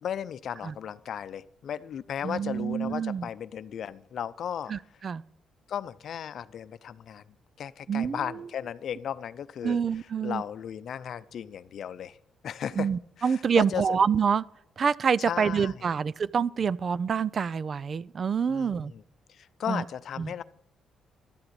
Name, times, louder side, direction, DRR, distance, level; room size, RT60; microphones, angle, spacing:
voice 1, 0.0-4.7 5.7-7.2 7.6-9.8 10.2-12.2 12.4-12.9 13.2-13.8 15.3-15.8 18.5-19.0 19.3-20.4, left 9 dB, 65° left, 0.6 m, -35 dB
voice 2, 2.2-3.3 4.7-5.2 7.9-8.4 9.6-10.4 12.8-14.4 14.8-18.9 19.7-19.8 20.2-20.3, right 6 dB, 45° right, 0.4 m, -27 dB
12.5 x 7.9 x 8.6 m
cardioid pair, 90°, 0 cm